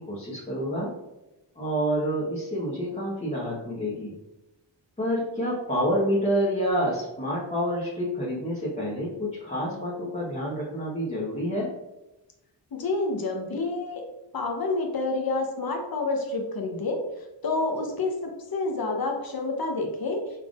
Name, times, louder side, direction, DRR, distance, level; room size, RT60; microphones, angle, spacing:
voice 1, 0.1-0.9 1.5-4.1 5.0-11.7, equal, 15° left, -8 dB, 1.1 m, -28 dB
voice 2, 12.7-14.0 14.3-17.0 17.4-20.2, left 3 dB, 50° left, 2 dB, 0.8 m, -28 dB
3.7 x 3.5 x 2.4 m, 0.98 s
cardioid pair, 60°, 45 cm